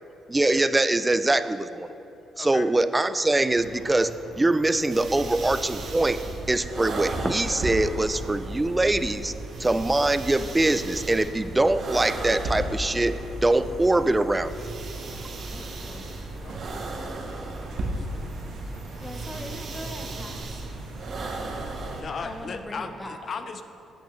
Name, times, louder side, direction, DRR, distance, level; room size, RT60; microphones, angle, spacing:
voice 1, 0.3-2.0 2.4-6.2 6.5-9.3 9.6-13.2 13.4-14.5, right 2 dB, 15° right, 13 dB, 0.3 m, -23 dB
voice 2, 2.4-2.7 16.4-16.6 17.8-18.3 18.7-19.0 19.3-19.6 22.0-23.6, left 5 dB, 50° left, 8 dB, 0.5 m, -37 dB
sound 1, 3.5-22.5, right 2 dB, 75° right, 1.3 m, -44 dB
sound 2, 4.9-22.0, right 2 dB, 50° right, 1.0 m, -35 dB
voice 3, 15.5-16.1 19.0-20.7 21.2-21.6 22.2-23.2, left 1 dB, 15° left, 4 dB, 0.8 m, -41 dB
8.5 x 8.5 x 3.1 m, 2.9 s
cardioid pair, 90°, 0 cm